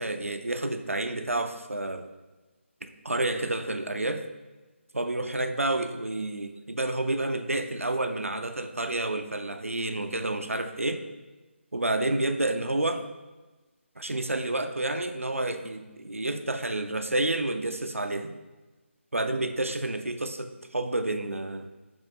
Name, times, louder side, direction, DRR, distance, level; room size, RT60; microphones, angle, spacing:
voice 1, 0.0-2.1 2.8-4.3 4.9-11.0 11.7-13.1 14.0-18.4 19.1-21.7, right 2 dB, 85° right, 8 dB, 0.6 m, -29 dB
7.1 x 3.3 x 4.2 m, 1.2 s
figure-of-eight pair, 155°, 7 cm